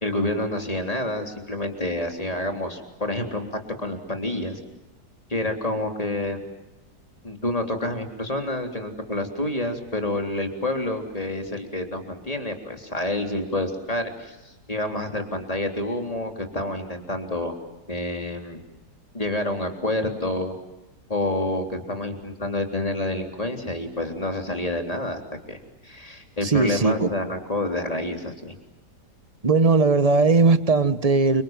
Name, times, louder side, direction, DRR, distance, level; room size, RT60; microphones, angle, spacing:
voice 1, 0.0-4.6 5.3-6.4 7.2-17.5 17.9-18.6 19.1-20.5 21.1-25.2 25.5-28.5, left 1 dB, 20° left, 5 dB, 3.7 m, -28 dB
voice 2, 26.4-27.1 29.4-31.4, right 3 dB, 25° right, 13 dB, 1.2 m, -19 dB
29.5 x 26.0 x 7.5 m, 0.96 s
omnidirectional pair, 1.8 m